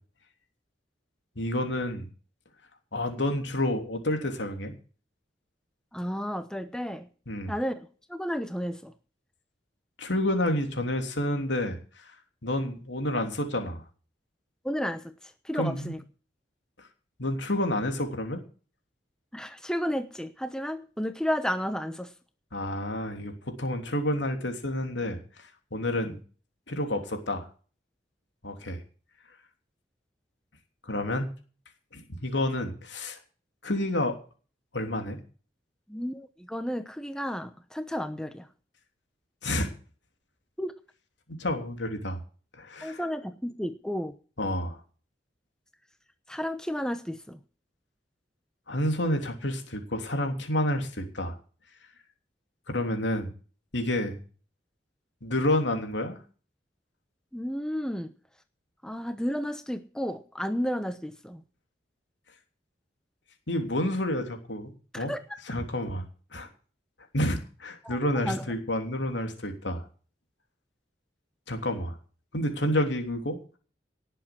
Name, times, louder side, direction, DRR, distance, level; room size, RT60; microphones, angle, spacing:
voice 1, 1.3-2.1 2.9-4.7 7.3-7.5 10.0-12.0 12.4-13.8 15.5-15.9 16.8-16.9 17.2-18.4 22.5-26.2 26.7-27.5 28.4-28.8 30.8-31.3 31.9-33.2 33.6-34.2 34.7-35.2 39.4-39.7 41.3-42.2 42.6-43.0 44.4-44.8 48.7-51.4 52.7-53.3 53.7-54.2 55.2-56.2 63.5-65.1 65.5-66.0 66.3-66.5 67.1-69.8 71.5-72.0 72.3-73.4, left 1 dB, 75° left, 5 dB, 3.3 m, -29 dB
voice 2, 5.9-7.1 7.5-8.9 14.6-16.0 19.3-22.1 35.9-38.5 40.6-40.7 42.8-44.1 46.3-47.4 57.3-58.1 58.8-61.4 64.9-65.2 67.8-68.0 68.2-68.4, equal, 5° left, 9 dB, 0.9 m, -32 dB
18.5 x 7.7 x 6.1 m, 0.39 s
head